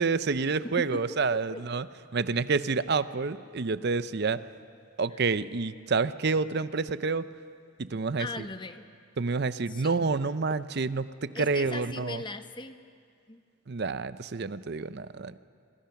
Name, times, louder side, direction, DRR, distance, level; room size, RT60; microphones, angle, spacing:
voice 1, 0.0-1.9 2.1-4.4 5.0-7.3 7.8-8.5 9.2-12.2 13.7-15.4, right 4 dB, 50° right, 14 dB, 0.6 m, -28 dB
voice 2, 0.8-1.7 5.1-5.2 8.2-8.9 9.7-10.1 11.3-12.8 13.3-13.4, left 2 dB, 20° left, 9 dB, 0.9 m, -39 dB
28.0 x 26.0 x 5.9 m, 2.2 s
head